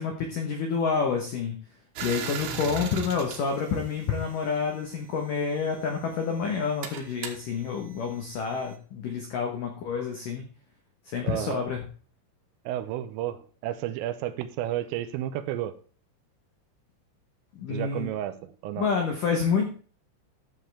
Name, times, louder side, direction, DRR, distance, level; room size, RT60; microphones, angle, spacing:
voice 1, 0.0-1.6 2.0-10.4 11.1-11.8 17.6-18.1 18.8-19.7, left 5 dB, 80° left, 2 dB, 1.9 m, -28 dB
sound 1, 2.0-4.6 5.5-8.7, right 6 dB, 70° right, 3.1 m, -39 dB
voice 2, 11.2-11.6 12.7-15.8 17.7-18.4 18.6-18.9, right 12 dB, 85° right, 11 dB, 3.3 m, -32 dB
12.5 x 7.5 x 3.5 m, 0.40 s
omnidirectional pair, 5.9 m